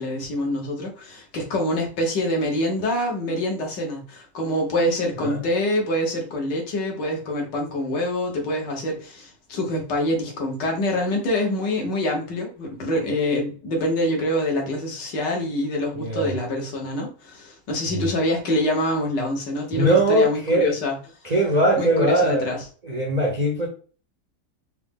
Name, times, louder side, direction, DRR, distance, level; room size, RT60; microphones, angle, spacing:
voice 1, 0.0-21.0 21.8-22.7, left 1 dB, 85° left, 1.7 m, -25 dB
voice 2, 16.0-16.3 19.7-20.8 21.2-22.5 22.8-23.7, right 1 dB, 65° right, 0.4 m, -20 dB
4.3 x 2.0 x 3.5 m
omnidirectional pair, 1.8 m